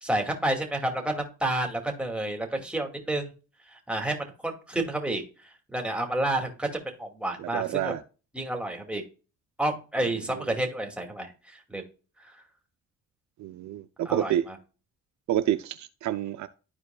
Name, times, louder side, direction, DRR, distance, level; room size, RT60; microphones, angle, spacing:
voice 1, 0.0-3.3 3.7-5.2 5.7-7.9 8.3-9.0 9.6-11.8 14.1-14.3, right 1 dB, 5° right, 2.3 m, -30 dB
voice 2, 7.4-8.0 10.3-10.4 13.4-14.5 15.3-16.5, right 12 dB, 70° right, 0.5 m, -28 dB
13.0 x 4.6 x 2.3 m
cardioid pair, 90°, 30 cm